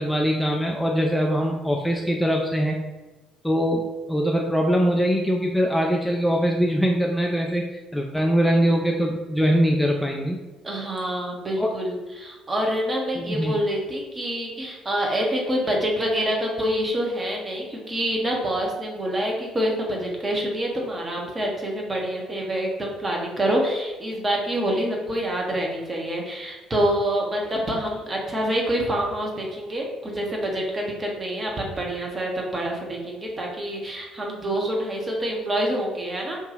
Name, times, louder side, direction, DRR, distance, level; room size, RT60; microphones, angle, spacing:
voice 1, 0.0-2.8 3.4-7.6 7.9-10.4 11.6-11.7 13.2-13.5, equal, 5° left, 0 dB, 0.3 m, -22 dB
voice 2, 10.6-36.4, equal, 25° right, -1 dB, 0.8 m, -26 dB
2.7 x 2.3 x 3.8 m, 1.2 s
figure-of-eight pair, 50°, 0 cm